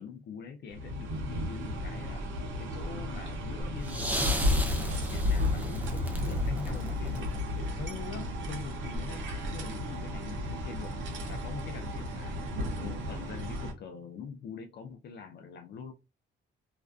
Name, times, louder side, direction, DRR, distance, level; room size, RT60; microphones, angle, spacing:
voice 1, 0.0-2.3 2.6-4.3 4.8-9.2 9.5-11.0 11.3-12.3 12.8-15.9, left 6 dB, 60° left, 5 dB, 0.4 m, -44 dB
sound 1, 0.7-13.7, left 1 dB, 75° right, 0.7 m, -33 dB
sound 2, 3.8-7.8 8.9-9.0, right 1 dB, 10° right, 0.4 m, -36 dB
2.4 x 2.2 x 2.3 m, 0.27 s
cardioid pair, 90°, 20 cm